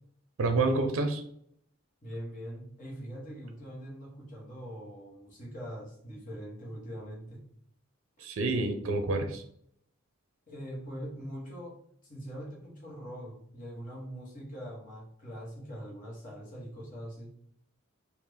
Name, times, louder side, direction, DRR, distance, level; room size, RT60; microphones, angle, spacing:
voice 1, 0.4-1.2 8.2-9.4, right 3 dB, 70° right, 6 dB, 0.5 m, -28 dB
voice 2, 2.0-7.4 10.5-17.3, equal, 40° left, -3 dB, 1.2 m, -42 dB
3.3 x 2.4 x 3.5 m, 0.67 s
head